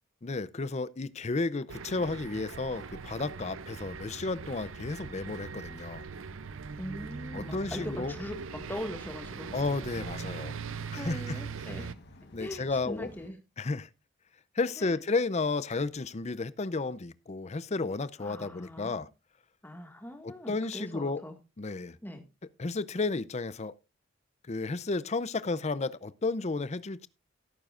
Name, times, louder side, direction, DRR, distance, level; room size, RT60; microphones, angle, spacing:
voice 1, 0.2-6.1 7.3-8.1 9.5-10.6 10.9-11.3 12.3-13.1 13.6-13.9 14.5-19.1 20.2-21.2 21.6-22.0 22.6-23.7 24.5-27.1, left 3 dB, 30° left, 0.5 m, -32 dB
sound 1, 1.7-11.9, right 5 dB, 70° right, 0.6 m, -41 dB
voice 2, 6.8-9.5 11.0-11.9 12.4-13.4 14.8-15.0 18.2-19.0 19.6-21.4 22.0-22.2, left 1 dB, 10° left, 1.8 m, -41 dB
sound 2, 7.3-13.3, left 1 dB, 55° left, 1.3 m, -52 dB
17.0 x 9.2 x 2.5 m
head